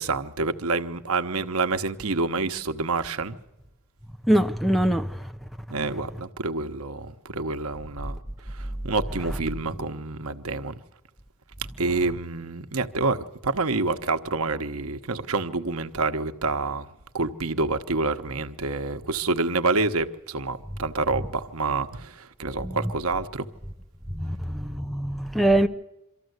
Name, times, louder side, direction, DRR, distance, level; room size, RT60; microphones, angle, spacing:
voice 1, 0.0-3.4 5.7-8.2 8.5-10.8 11.8-16.9 17.1-23.5, right 3 dB, 80° right, 1.0 m, -27 dB
voice 2, 4.2-5.3 22.6-22.8 24.1-25.7, right 1 dB, ahead, 0.7 m, -23 dB
24.0 x 14.0 x 8.0 m
head